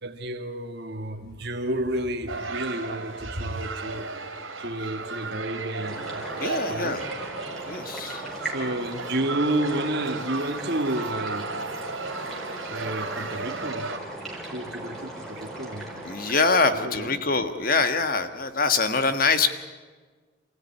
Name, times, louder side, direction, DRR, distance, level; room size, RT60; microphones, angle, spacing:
voice 1, 0.0-4.3 4.6-6.2 6.7-7.0 8.4-11.6 12.7-13.9 14.5-15.9 16.7-17.2, right 1 dB, 55° right, 4 dB, 2.1 m, -31 dB
sound 1, 2.3-14.0, right 3 dB, 80° right, 3.2 m, -35 dB
sound 2, 5.9-17.1, right 1 dB, ahead, 4.4 m, -38 dB
voice 2, 6.4-7.0 7.7-8.2 16.0-19.5, left 4 dB, 45° left, 9 dB, 1.6 m, -24 dB
27.5 x 16.0 x 9.8 m, 1.4 s
head